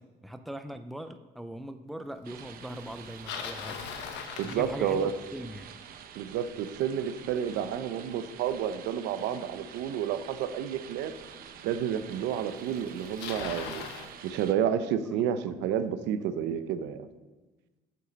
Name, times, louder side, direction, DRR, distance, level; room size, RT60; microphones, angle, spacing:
voice 1, 0.0-3.8 4.4-5.7, equal, ahead, 8 dB, 0.4 m, -40 dB
sound 1, 2.2-14.5, right 8 dB, 55° right, 0.8 m, -48 dB
Bicycle, 2.9-5.3 10.3-10.4 11.2-11.3 12.4-12.5 12.7-14.1, left 7 dB, 85° left, 1.2 m, -39 dB
voice 2, 4.4-5.1 6.1-11.2 11.6-13.9 14.2-17.1, right 9 dB, 90° right, 11 dB, 0.8 m, -30 dB
9.4 x 6.9 x 6.3 m, 1.2 s
cardioid pair, 155°, 18 cm